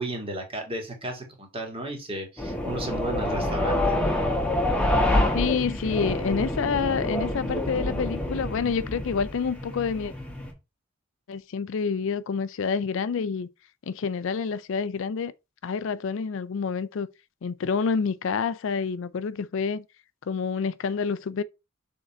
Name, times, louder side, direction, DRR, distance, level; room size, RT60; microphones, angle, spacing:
voice 1, 0.0-3.8, right 1 dB, 25° right, 2.0 m, -33 dB
sound 1, 2.4-10.5, left 1 dB, 5° left, 1.3 m, -27 dB
voice 2, 5.3-10.1 11.3-13.5 13.9-15.3 15.6-17.1 17.4-19.8 20.3-21.4, left 5 dB, 65° left, 0.4 m, -28 dB
6.4 x 3.8 x 4.2 m
head